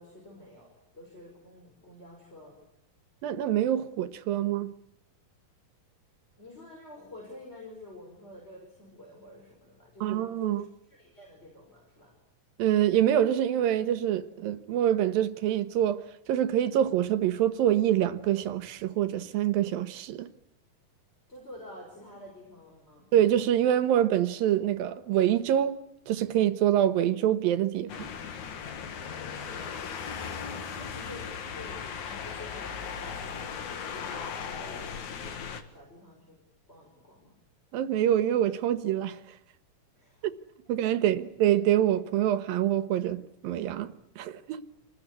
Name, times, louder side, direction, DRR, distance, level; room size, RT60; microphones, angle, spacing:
voice 1, 0.0-2.6 6.4-12.1 21.3-23.1 29.0-29.9 30.2-35.3 35.7-36.4 36.7-37.4 40.0-40.3 40.6-41.2, left 1 dB, 15° left, 5.8 m, -49 dB
voice 2, 3.2-4.7 10.0-10.6 12.6-20.3 23.1-25.8 26.1-28.1 37.7-39.2 40.2-40.3 40.7-44.6, right 11 dB, 90° right, 3.0 m, -26 dB
sound 1, 27.9-35.6, left 6 dB, 60° left, 2.9 m, -37 dB
28.0 x 20.0 x 9.7 m
omnidirectional pair, 4.0 m